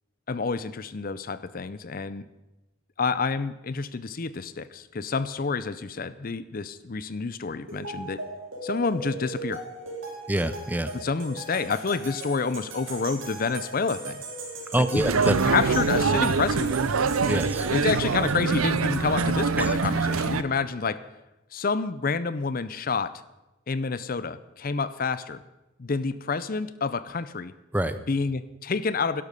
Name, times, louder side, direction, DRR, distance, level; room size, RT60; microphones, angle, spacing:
voice 1, 0.3-2.3 3.0-8.2 8.6-9.6 10.9-14.2 14.9-15.1 15.5-16.7 17.7-21.0 21.5-23.1 23.7-25.4 25.8-27.5 28.1-29.2, left 4 dB, 45° left, 15 dB, 0.5 m, -28 dB
sound 1, 7.7-18.3, right 2 dB, 65° right, 4.1 m, -38 dB
voice 2, 10.3-10.9 14.7-15.4 17.3-17.7 19.6-19.7 27.7-28.0, right 1 dB, 10° right, 12 dB, 0.5 m, -25 dB
sound 2, 15.0-20.4, right 4 dB, 85° right, 0.7 m, -24 dB
12.0 x 11.0 x 6.6 m, 0.98 s
head